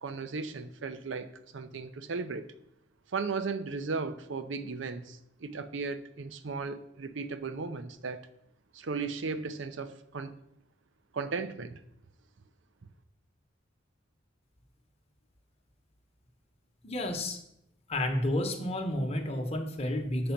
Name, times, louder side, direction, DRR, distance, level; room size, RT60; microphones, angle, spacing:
voice 1, 0.0-2.5 3.1-8.3 8.7-10.4 11.1-11.8, right 4 dB, 70° right, 11 dB, 0.6 m, -36 dB
voice 2, 16.8-17.4 17.9-20.3, left 1 dB, 35° left, 4 dB, 1.0 m, -31 dB
6.8 x 5.1 x 5.8 m, 0.78 s
head